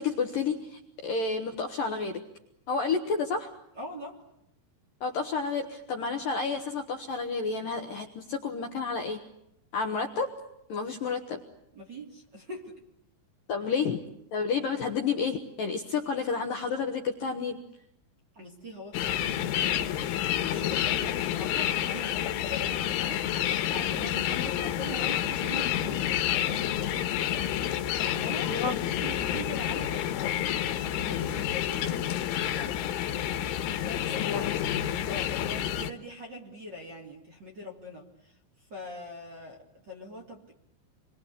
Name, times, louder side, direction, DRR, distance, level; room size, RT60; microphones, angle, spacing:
voice 1, 0.0-2.2 2.7-3.5 5.0-9.2 9.7-10.3 10.7-11.4 13.5-14.0 14.3-17.6 24.3-24.5 28.5-28.7 34.2-34.5, left 5 dB, 65° left, 4 dB, 2.5 m, -30 dB
voice 2, 3.7-4.2 11.7-12.8 18.3-32.8 33.8-34.5 35.1-38.3 38.7-40.5, equal, 25° right, -2 dB, 2.9 m, -43 dB
sound 1, 18.9-35.9, left 11 dB, 85° left, 3.7 m, -29 dB
28.0 x 22.5 x 8.4 m, 0.79 s
omnidirectional pair, 5.4 m